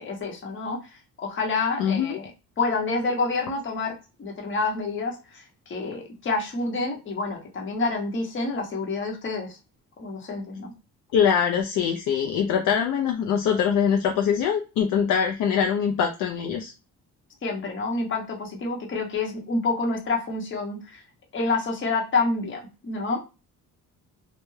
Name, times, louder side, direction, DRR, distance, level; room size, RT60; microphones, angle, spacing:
voice 1, 0.0-2.3 2.6-9.6 10.0-10.7 17.4-21.0 21.3-23.2, left 3 dB, 35° left, 0 dB, 0.8 m, -28 dB
voice 2, 1.8-2.2 11.1-16.7, left 7 dB, 75° left, 3 dB, 0.5 m, -23 dB
2.2 x 2.1 x 3.1 m, 0.30 s
cardioid pair, 125°, 32 cm